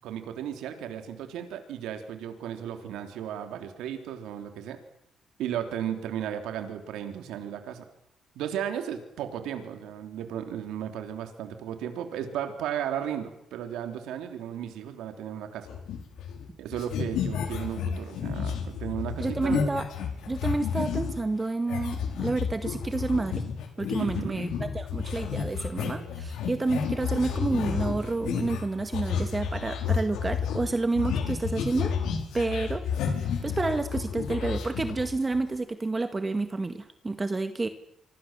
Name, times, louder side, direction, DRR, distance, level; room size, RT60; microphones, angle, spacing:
voice 1, 0.0-4.8 5.4-7.9 8.4-15.7 16.6-19.6 24.0-24.4, right 9 dB, 90° right, 6 dB, 3.5 m, -35 dB
sound 1, 15.7-16.5 16.7-21.2 21.7-35.4, left 7 dB, 85° left, 5.3 m, -31 dB
voice 2, 19.2-19.9 20.3-23.4 23.8-31.9 32.3-32.8 33.2-37.7, right 3 dB, 25° right, 8 dB, 1.9 m, -29 dB
26.5 x 25.5 x 7.6 m, 0.80 s
cardioid pair, 90°, 0 cm